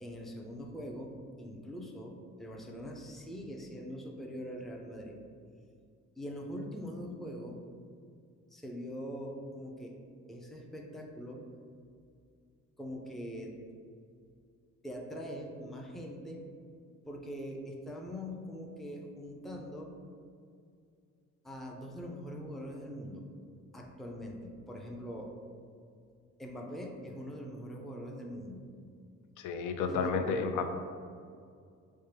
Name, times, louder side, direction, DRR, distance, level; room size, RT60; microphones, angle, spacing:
voice 1, 0.0-5.2 6.2-7.6 8.5-10.0 10.3-11.4 12.8-13.5 14.8-16.4 17.1-19.9 21.4-23.3 23.7-25.3 26.4-28.6 29.9-30.3, equal, ahead, 0 dB, 0.4 m, -42 dB
voice 2, 29.4-30.7, left 5 dB, 80° left, 6 dB, 0.4 m, -31 dB
4.4 x 2.1 x 3.2 m, 2.3 s
cardioid pair, 90°, 30 cm